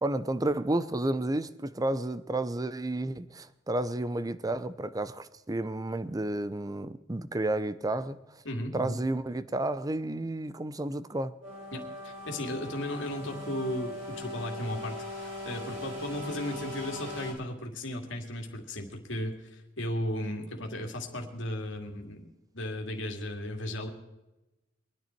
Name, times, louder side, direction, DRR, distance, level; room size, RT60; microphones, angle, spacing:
voice 1, 0.0-8.2 8.7-11.3, right 2 dB, 20° right, 14 dB, 0.6 m, -31 dB
voice 2, 8.4-9.0 11.7-22.3 22.5-23.9, left 1 dB, 65° left, 2 dB, 2.5 m, -35 dB
sound 1, 11.4-17.3, left 1 dB, 70° right, 4.6 m, -40 dB
23.0 x 10.0 x 4.5 m, 1.0 s
head